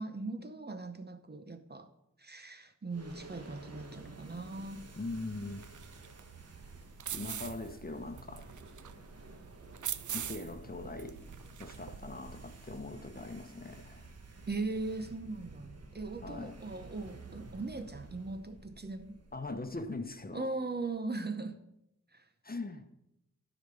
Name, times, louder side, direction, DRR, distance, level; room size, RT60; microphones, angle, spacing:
voice 1, 0.0-1.9 2.2-4.8 7.1-7.2 14.5-19.2 20.3-21.6 22.1-22.2, right 3 dB, 35° right, 0.7 m, -39 dB
sound 1, 2.9-20.3, right 3 dB, 55° right, 1.3 m, -52 dB
voice 2, 5.0-5.6 7.1-8.5 10.1-11.2 11.6-14.1 16.2-16.6 19.3-20.5 22.4-22.8, left 2 dB, 30° left, 1.0 m, -41 dB
sound 2, 5.6-12.8, right 9 dB, 80° right, 0.5 m, -44 dB
11.5 x 5.1 x 6.9 m
wide cardioid pair, 75°, 30 cm